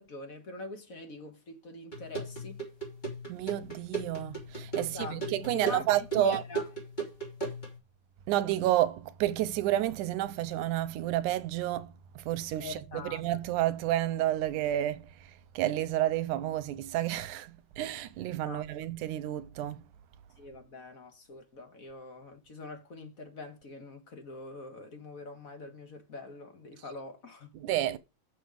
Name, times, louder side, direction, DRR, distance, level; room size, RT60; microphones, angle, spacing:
voice 1, 0.0-2.6 4.8-5.9 6.2-6.6 12.6-13.2 18.4-18.6 20.4-27.5, left 3 dB, 40° left, 1.3 m, -43 dB
sound 1, 1.9-7.8, right 4 dB, 15° left, 2.4 m, -37 dB
voice 2, 3.3-6.4 8.3-15.1 15.6-19.8 27.5-28.0, right 13 dB, 90° right, 2.2 m, -30 dB
7.6 x 6.7 x 5.0 m
omnidirectional pair, 3.6 m